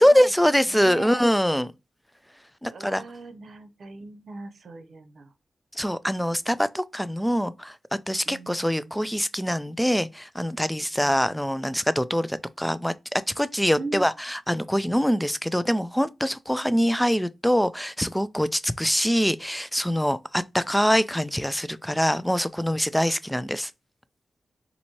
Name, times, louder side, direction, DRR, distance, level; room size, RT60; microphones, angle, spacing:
voice 1, 0.0-1.7 2.6-3.0 5.7-7.8 8.1-23.7, equal, 5° left, 0.3 m, -24 dB
voice 2, 0.7-1.2 2.7-5.3 8.2-9.0 13.7-14.0, right 3 dB, 70° right, 0.7 m, -40 dB
4.2 x 2.7 x 2.9 m
cardioid pair, 70°, 0 cm